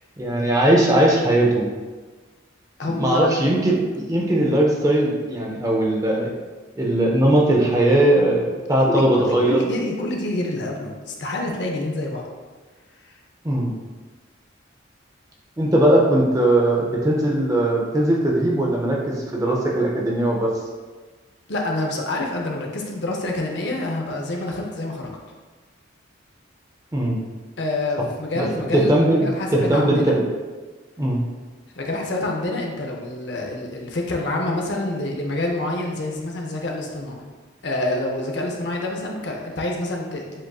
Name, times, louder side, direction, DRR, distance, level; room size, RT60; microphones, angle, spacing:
voice 1, 0.2-1.7 2.9-6.3 6.8-9.6 13.4-13.7 15.6-20.5 26.9-27.2 28.3-30.2 31.0-31.2, right 1 dB, 15° right, -2 dB, 0.5 m, -19 dB
voice 2, 2.8-3.7 8.8-12.3 21.5-25.1 27.6-30.2 31.8-37.2 37.6-40.3, left 2 dB, 60° left, 0 dB, 0.6 m, -27 dB
7.4 x 2.5 x 2.3 m, 1.3 s
head